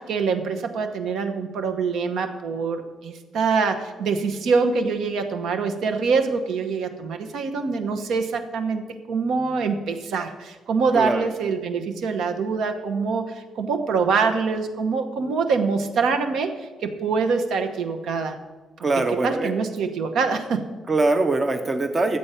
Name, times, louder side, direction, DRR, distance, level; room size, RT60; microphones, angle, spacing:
voice 1, 0.0-18.4 19.2-20.7, right 5 dB, 70° right, 7 dB, 1.0 m, -24 dB
voice 2, 10.9-11.3 18.8-19.5 20.9-22.2, right 2 dB, 20° right, 6 dB, 0.6 m, -22 dB
10.5 x 7.8 x 5.6 m, 1.3 s
cardioid pair, 170°, 0 cm